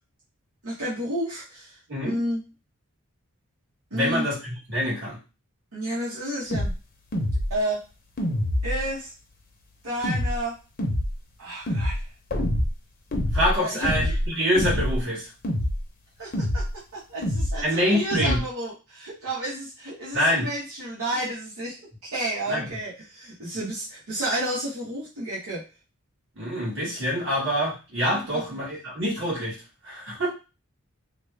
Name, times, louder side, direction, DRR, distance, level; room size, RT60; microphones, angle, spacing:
voice 1, 0.6-1.7 2.0-2.4 3.9-4.3 5.7-6.7 7.5-7.8 8.6-9.1 9.8-10.6 11.4-12.0 13.6-14.1 16.2-16.7 16.9-21.8 22.1-25.6 28.3-28.6, right 1 dB, 80° right, -9 dB, 1.2 m, -31 dB
voice 2, 3.9-5.2 13.3-15.3 17.6-18.4 20.1-20.5 22.5-22.7 26.4-29.6 29.8-30.3, equal, 55° right, -6 dB, 1.7 m, -25 dB
sound 1, 6.5-6.7 7.1-7.5 8.2-8.9 10.0-10.4 10.8-11.1 11.7-12.0 12.3-12.7 13.1-13.5 13.8-14.3 14.5-15.0 15.4-15.8 16.3-16.7 17.2-17.6 18.1-18.4, left 1 dB, 40° left, 0.7 m, -25 dB
3.1 x 2.2 x 3.3 m, 0.31 s
head